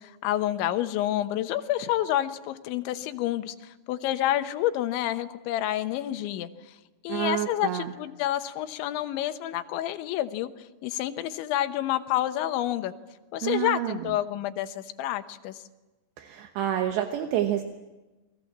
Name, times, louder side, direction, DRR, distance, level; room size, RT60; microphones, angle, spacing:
voice 1, 0.0-6.8 7.0-12.9 13.3-15.6, left 13 dB, 85° left, 9 dB, 3.4 m, -29 dB
voice 2, 7.1-7.9 13.4-14.0 16.2-17.6, right 11 dB, 75° right, 5 dB, 3.2 m, -28 dB
29.0 x 21.5 x 7.4 m, 1.1 s
omnidirectional pair, 5.2 m